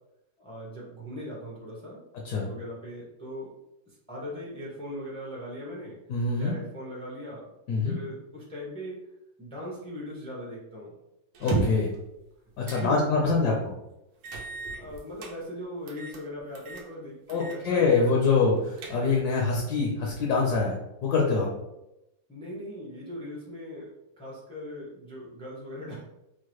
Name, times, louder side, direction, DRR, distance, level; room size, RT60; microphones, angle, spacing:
voice 1, 0.4-2.0 2.3-3.5 3.9-6.0 6.4-7.5 7.8-9.0 9.4-10.9 12.6-13.6 14.7-18.4 22.3-26.0, equal, 5° left, -5 dB, 0.5 m, -39 dB
voice 2, 6.1-6.5 7.7-8.0 11.4-11.9 12.6-13.6 17.3-21.5, left 4 dB, 70° left, -1 dB, 1.1 m, -25 dB
sound 1, 11.3-12.0 12.6-12.9 13.3-13.4 14.2-15.3 15.9-16.2 16.5-16.9 17.3-17.6 17.9-18.0 18.5-19.3, right 3 dB, 90° right, 1.4 m, -33 dB
4.6 x 2.2 x 3.1 m, 0.89 s
omnidirectional pair, 2.0 m